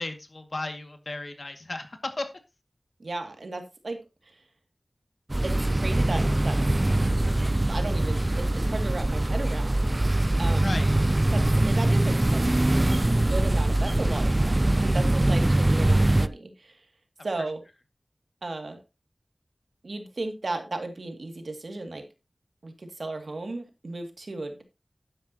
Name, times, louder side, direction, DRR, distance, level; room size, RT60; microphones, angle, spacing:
voice 1, 0.0-1.9 2.2-2.3 10.6-11.0, left 2 dB, 65° left, 6 dB, 2.1 m, -34 dB
voice 2, 3.0-4.0 5.4-6.6 7.7-9.9 10.4-10.8 11.3-12.4 13.1-16.8 17.2-17.6 18.4-18.8 19.8-22.0 22.6-24.6, right 2 dB, 85° right, 5 dB, 2.3 m, -35 dB
sound 1, 5.3-16.3, right 1 dB, 35° right, 0.5 m, -23 dB
11.5 x 10.5 x 2.9 m, 0.25 s
wide cardioid pair, 55°, 0 cm